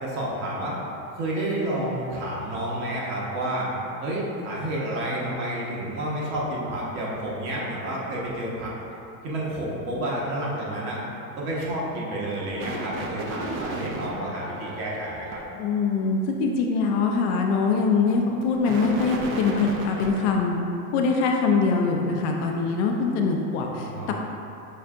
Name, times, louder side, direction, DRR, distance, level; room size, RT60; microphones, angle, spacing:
voice 1, 0.0-0.7 1.1-3.7 4.0-8.7 9.2-11.0 11.4-15.4 23.8-24.1, right 1 dB, 60° right, -5 dB, 1.3 m, -30 dB
sound 1, 12.2-15.4 18.2-20.4, right 2 dB, 30° right, 0.4 m, -34 dB
voice 2, 15.5-20.6 20.9-24.1, left 4 dB, 50° left, 1 dB, 0.4 m, -23 dB
5.4 x 3.3 x 2.5 m, 2.9 s
supercardioid pair, 115°, 45 cm